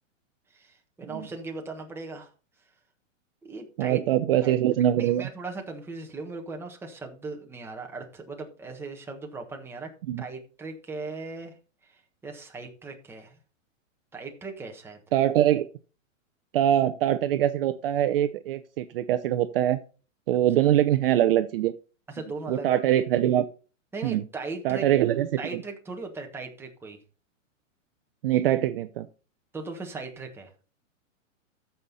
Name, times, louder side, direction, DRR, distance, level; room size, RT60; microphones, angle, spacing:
voice 1, 0.5-2.3 3.4-4.0 4.4-4.6 5.0-9.9 10.2-11.5 11.9-13.4 14.1-15.0 22.1-22.8 23.9-24.9 25.4-27.0 29.5-30.5, right 3 dB, 5° right, 2 dB, 1.4 m, -38 dB
voice 2, 3.8-5.3 10.1-10.2 15.1-15.7 16.5-19.8 20.3-21.7 22.5-23.4 24.0-24.2 24.6-25.6 28.2-29.1, right 12 dB, 45° right, 11 dB, 0.7 m, -23 dB
14.0 x 5.7 x 4.1 m, 0.35 s
hypercardioid pair, 150°, 39 cm